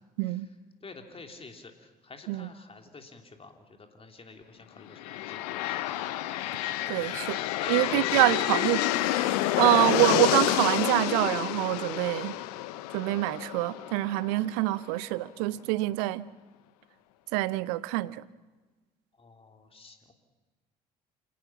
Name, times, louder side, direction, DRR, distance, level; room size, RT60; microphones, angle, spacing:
voice 1, 0.8-3.5 3.8-6.0 6.9-8.5 19.2-20.1, left 3 dB, 25° left, 3.2 m, -48 dB
sound 1, 4.9-14.7, left 15 dB, 70° left, 0.9 m, -29 dB
voice 2, 6.9-7.4 7.7-8.8 9.1-12.4 12.9-16.3 17.3-18.2, right 19 dB, 65° right, 0.7 m, -26 dB
27.5 x 18.0 x 5.9 m
figure-of-eight pair, 50°, 21 cm